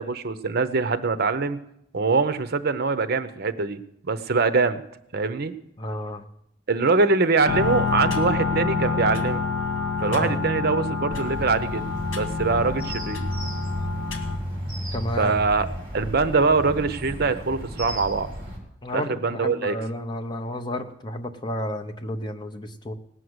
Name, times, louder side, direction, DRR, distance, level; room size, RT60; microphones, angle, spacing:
voice 1, 0.0-1.6 1.9-3.8 4.1-4.8 5.1-5.5 6.7-9.4 10.0-11.8 12.1-13.2 15.2-15.7 15.9-18.3 18.9-19.8, right 4 dB, 55° right, 11 dB, 0.7 m, -23 dB
voice 2, 5.8-6.2 10.1-10.4 14.9-15.4 18.8-22.9, left 1 dB, 25° left, 6 dB, 0.8 m, -31 dB
sound 1, 7.4-14.4, left 4 dB, 65° left, 2.0 m, -27 dB
sound 2, 11.1-18.6, equal, 30° right, 4.5 m, -33 dB
18.5 x 6.4 x 8.0 m, 0.77 s
head